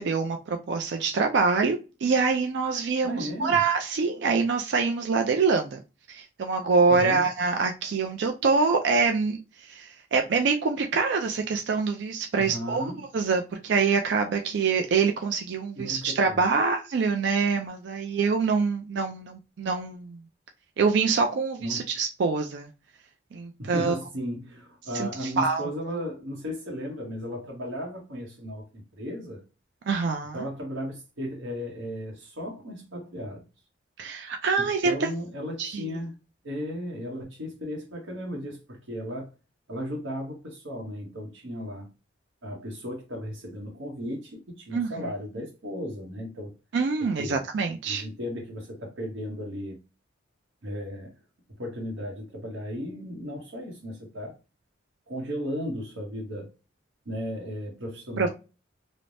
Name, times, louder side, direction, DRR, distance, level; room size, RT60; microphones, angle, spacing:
voice 1, 0.0-5.8 6.1-12.9 13.1-20.2 20.8-22.7 23.3-24.0 24.9-25.7 29.9-30.5 34.0-34.9 35.6-36.0 44.7-45.1 46.7-48.0 58.2-58.3, right 4 dB, 60° right, 0.3 m, -25 dB
voice 2, 3.0-3.6 6.9-7.3 12.4-13.0 15.8-16.4 21.6-21.9 23.6-29.4 30.3-33.4 34.6-36.1 36.4-39.3 39.7-41.9 42.4-46.5 47.2-47.4 47.8-49.8 50.6-51.1 51.6-54.3 55.1-56.5 57.1-58.3, equal, 80° right, 0.9 m, -35 dB
3.2 x 2.0 x 2.5 m
head